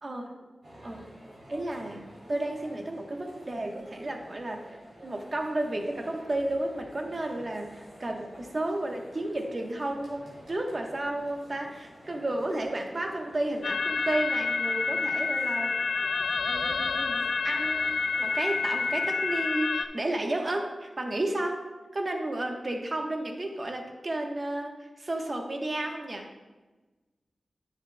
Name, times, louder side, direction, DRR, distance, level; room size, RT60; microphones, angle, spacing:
voice 1, 0.0-0.3 0.8-1.0 1.5-15.8 16.5-21.6 21.9-26.3, right 1 dB, 40° right, 2 dB, 1.0 m, -32 dB
sound 1, 0.6-19.4, equal, 75° right, 2.9 m, -51 dB
sound 2, 13.6-19.8, left 4 dB, 90° left, 0.3 m, -28 dB
9.7 x 9.6 x 2.2 m, 1.2 s
wide cardioid pair, 110°, 0 cm